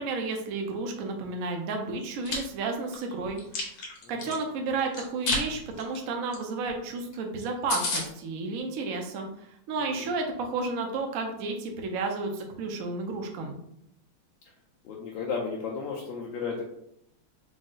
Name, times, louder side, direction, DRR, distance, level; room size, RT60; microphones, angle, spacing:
voice 1, 0.0-3.7 4.1-9.3 9.7-13.5, right 3 dB, 75° right, 3 dB, 0.8 m, -32 dB
Chewing mastication, 2.0-2.4 2.9-4.4 4.9-5.4 5.8-6.0 6.3-6.4 6.7-6.8 7.1-7.2 7.4-7.5 7.7-8.0, left 2 dB, 55° left, 1.2 m, -30 dB
voice 2, 4.0-4.4 9.8-10.1 14.8-16.6, left 5 dB, 75° left, -1 dB, 1.2 m, -34 dB
5.1 x 2.0 x 3.8 m, 0.75 s
omnidirectional pair, 2.2 m